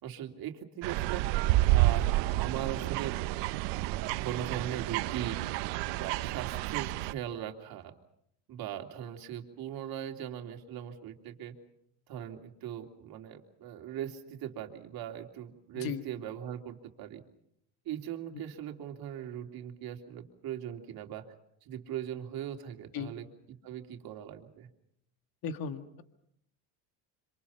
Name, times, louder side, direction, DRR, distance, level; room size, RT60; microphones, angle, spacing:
voice 1, 0.0-1.2 1.7-3.2 4.2-5.5 5.9-7.9 8.5-11.5 12.1-17.2 17.8-21.3 21.6-23.2 23.6-24.7, right 10 dB, 55° right, 3 dB, 3.3 m, -39 dB
sound 1, 0.8-7.1, right 17 dB, 75° right, 1.0 m, -29 dB
voice 2, 25.4-26.0, left 6 dB, 55° left, 8 dB, 2.0 m, -36 dB
27.0 x 26.5 x 5.7 m, 0.74 s
cardioid pair, 115°, 42 cm